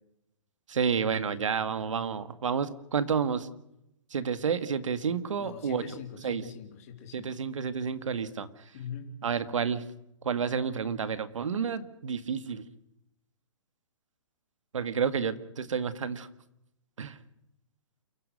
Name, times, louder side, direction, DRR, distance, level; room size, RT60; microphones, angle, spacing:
voice 1, 0.7-3.5 4.1-5.8 6.2-6.4 7.1-8.5 9.2-9.8 10.2-12.6 14.7-16.3 17.0-17.2, right 6 dB, 75° right, 12 dB, 1.9 m, -30 dB
voice 2, 5.4-7.3 8.7-9.2, left 7 dB, 30° left, 3 dB, 2.9 m, -42 dB
28.5 x 16.0 x 6.5 m, 0.82 s
hypercardioid pair, 175°, 16 cm